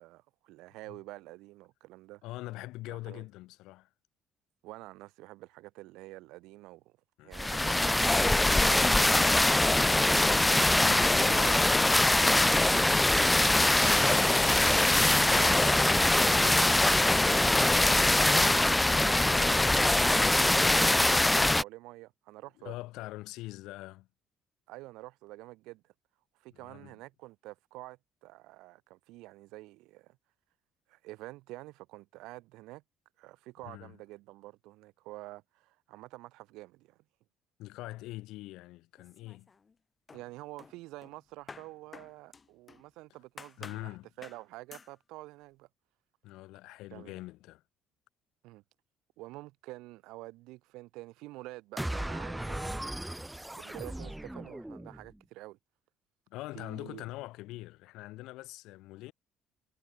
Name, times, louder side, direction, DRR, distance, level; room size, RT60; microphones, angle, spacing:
voice 1, 0.0-2.2 2.9-3.3 4.6-6.9 7.2-9.4 10.8-11.6 12.7-12.8 15.4-17.2 18.9-22.8 24.7-25.8 26.3-30.2 30.9-32.8 33.2-37.0 40.1-45.7 46.9-47.2 48.4-48.6 49.2-53.0 53.3-55.6 56.5-57.0, right 20 dB, 85° right, 7.5 m, -47 dB
voice 2, 2.2-3.9 7.2-7.3 10.4-11.9 22.6-24.1 26.5-26.9 33.6-33.9 37.6-39.5 43.6-44.1 46.2-47.6 56.3-59.1, left 18 dB, 85° left, 4.9 m, -44 dB
sound 1, 7.3-21.6, left 1 dB, 10° left, 0.3 m, -23 dB
sound 2, 39.0-39.8 40.1-42.9 43.4-43.9 44.2-44.4 44.7-44.9, left 5 dB, 30° left, 1.9 m, -51 dB
sound 3, 51.8-55.1, right 1 dB, 5° right, 1.3 m, -37 dB
cardioid pair, 95°, 0 cm